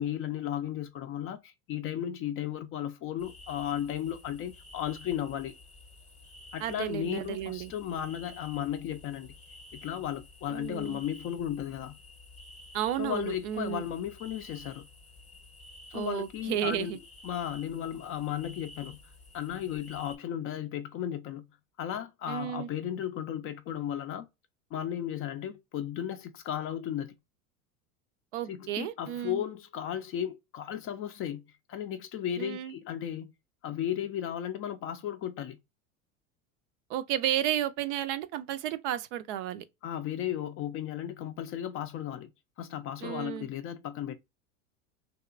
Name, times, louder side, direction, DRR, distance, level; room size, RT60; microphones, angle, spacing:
voice 1, 0.0-5.5 6.5-9.3 9.7-12.0 13.0-14.8 15.9-16.9 17.2-19.0 19.3-21.4 21.8-24.3 24.7-27.2 28.5-31.4 31.7-33.3 33.6-35.6 39.8-42.3 42.6-44.2, left 10 dB, 30° left, 0.4 m, -35 dB
sound 1, 3.2-20.2, left 2 dB, 15° left, 0.8 m, -52 dB
voice 2, 6.6-7.7 10.5-11.0 12.7-13.8 15.9-17.0 22.3-22.7 28.3-29.4 32.4-32.7 36.9-39.6 43.0-43.5, right 11 dB, 55° right, 0.5 m, -32 dB
2.8 x 2.3 x 2.3 m
hypercardioid pair, 85°, 43 cm